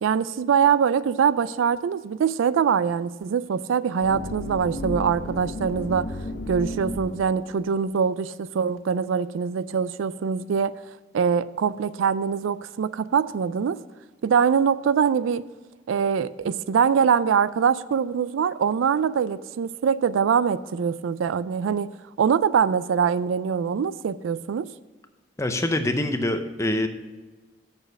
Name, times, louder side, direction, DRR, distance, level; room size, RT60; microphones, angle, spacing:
voice 1, 0.0-6.1 6.5-10.7 11.1-13.8 14.2-15.4 15.9-21.9 22.2-24.6, right 7 dB, 85° right, 16 dB, 0.3 m, -23 dB
sound 1, 4.0-7.5, left 1 dB, 60° left, 0.8 m, -33 dB
voice 2, 25.4-26.9, left 1 dB, 15° left, 7 dB, 0.6 m, -25 dB
7.1 x 6.5 x 7.7 m, 1.2 s
head